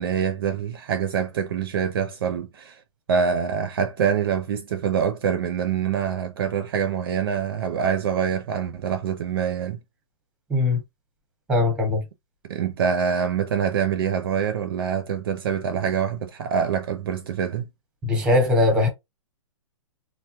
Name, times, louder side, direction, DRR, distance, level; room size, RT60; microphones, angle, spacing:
voice 1, 0.0-2.8 3.1-9.8 12.5-17.7, right 7 dB, 45° right, 0.4 m, -25 dB
voice 2, 10.5-10.8 11.5-12.0 18.0-18.9, left 2 dB, 5° right, 0.8 m, -20 dB
3.3 x 2.1 x 2.8 m
hypercardioid pair, 165°, 18 cm